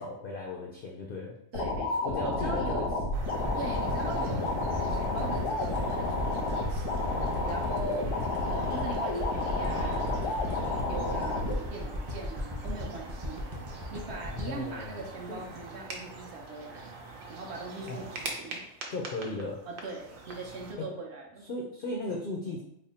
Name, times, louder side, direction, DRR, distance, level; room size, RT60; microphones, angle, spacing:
voice 1, 0.0-1.3 2.0-2.8 14.3-15.4 17.9-18.1 18.9-19.6 20.8-20.9 21.5-22.6, left 2 dB, 65° left, -1 dB, 0.5 m, -36 dB
sound 1, 1.5-11.5, left 2 dB, 80° left, 1.2 m, -31 dB
voice 2, 1.5-3.0 3.5-7.0 7.5-8.1 8.5-13.4 13.9-16.9 17.3-18.6 19.7-21.4, right 3 dB, 60° right, -1 dB, 0.8 m, -41 dB
sound 2, 3.1-20.7, right 3 dB, 80° right, 1.1 m, -43 dB
sound 3, 3.4-15.8 16.2-16.3, left 1 dB, 30° right, 0.3 m, -36 dB
3.4 x 2.1 x 4.0 m, 0.76 s
omnidirectional pair, 1.4 m